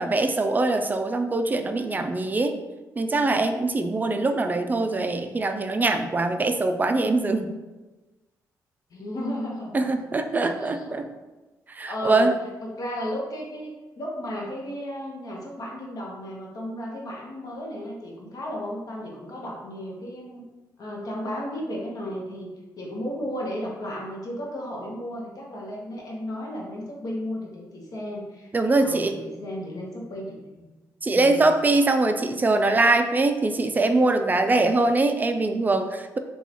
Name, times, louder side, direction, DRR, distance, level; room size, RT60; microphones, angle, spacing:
voice 1, 0.0-2.6 3.0-7.5 9.7-11.1 11.7-12.3 28.5-29.1 31.0-36.2, right 2 dB, 25° right, 7 dB, 0.3 m, -23 dB
voice 2, 8.9-9.9 10.3-11.0 11.9-12.3 12.6-20.4 20.8-22.5 22.8-30.7 31.1-31.5, equal, 55° left, -2 dB, 0.9 m, -34 dB
2.8 x 2.3 x 4.0 m, 1.2 s
cardioid pair, 80°, 7 cm